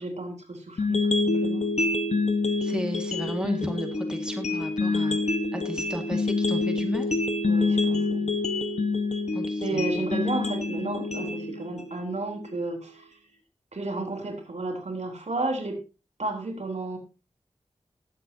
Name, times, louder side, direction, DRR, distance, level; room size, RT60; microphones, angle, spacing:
voice 1, 0.0-1.7 7.4-8.3 9.6-13.1 13.7-15.8 16.2-17.0, right 2 dB, 70° right, 2 dB, 3.5 m, -32 dB
sound 1, 0.8-12.8, left 3 dB, 70° left, 1.3 m, -27 dB
voice 2, 2.6-5.2 5.5-7.1 9.3-9.8, equal, 5° right, 3 dB, 1.9 m, -33 dB
20.0 x 7.8 x 2.8 m, 0.29 s
wide cardioid pair, 70°, 12 cm